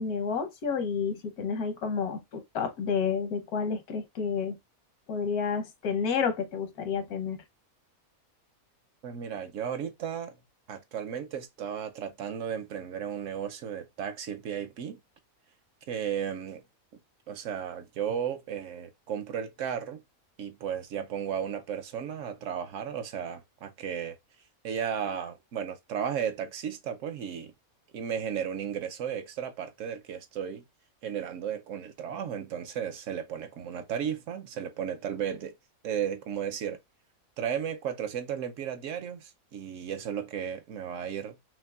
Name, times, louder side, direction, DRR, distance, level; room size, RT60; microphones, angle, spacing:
voice 1, 0.0-4.6 5.1-7.4, left 6 dB, 90° left, 1.4 m, -30 dB
voice 2, 9.0-10.3 10.7-15.0 15.9-16.6 17.3-20.0 20.4-24.2 24.6-27.5 27.9-30.6 31.0-35.5 35.8-36.8 37.4-41.3, right 8 dB, 65° right, 0.9 m, -34 dB
5.8 x 2.5 x 2.3 m
omnidirectional pair, 1.5 m